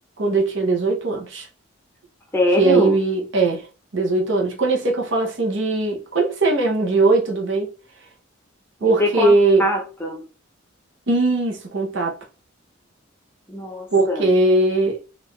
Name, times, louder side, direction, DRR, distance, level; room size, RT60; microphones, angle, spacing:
voice 1, 0.2-1.5 2.6-3.7 3.9-7.7 8.8-9.7 11.1-12.2 13.9-15.0, right 3 dB, 65° right, 0.9 m, -19 dB
voice 2, 2.3-2.9 9.0-10.2 13.5-14.3, left 1 dB, 10° left, 0.7 m, -23 dB
3.9 x 2.5 x 3.1 m
head